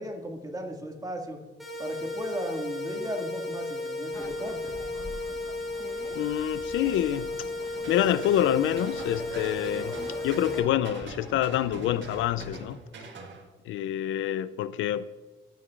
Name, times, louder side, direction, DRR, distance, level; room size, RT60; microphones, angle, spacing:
voice 1, 0.0-1.4 1.8-4.7, right 1 dB, 20° right, 2 dB, 1.9 m, -36 dB
sound 1, 1.6-10.6, left 2 dB, ahead, 2.9 m, -34 dB
sound 2, 4.1-12.5, left 2 dB, 15° left, 1.0 m, -45 dB
voice 2, 6.1-7.5 7.9-10.0 10.2-12.8 13.6-15.2, left 11 dB, 80° left, 16 dB, 0.4 m, -27 dB
sound 3, 7.7-13.5, right 3 dB, 65° right, 1.5 m, -44 dB
14.5 x 8.1 x 2.4 m, 1.2 s
cardioid pair, 90°, 20 cm